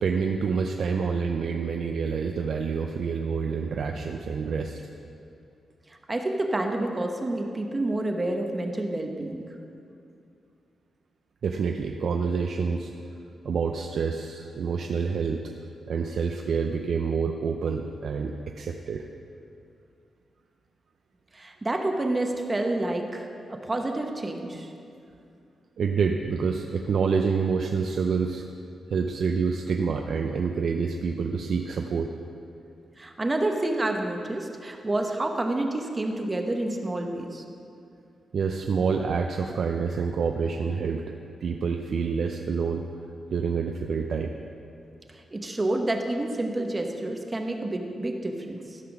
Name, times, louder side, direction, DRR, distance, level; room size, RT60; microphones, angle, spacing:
voice 1, 0.0-4.8 11.4-12.9 13.4-15.4 15.9-19.0 25.8-28.5 28.9-32.2 38.3-41.0 41.4-42.8 43.3-44.3, right 5 dB, 65° right, 3 dB, 0.5 m, -27 dB
voice 2, 6.1-9.4 21.3-24.7 33.0-37.4 45.1-48.8, right 2 dB, 20° right, 3 dB, 0.8 m, -29 dB
14.0 x 5.8 x 5.9 m, 2.5 s
wide cardioid pair, 125°, 0 cm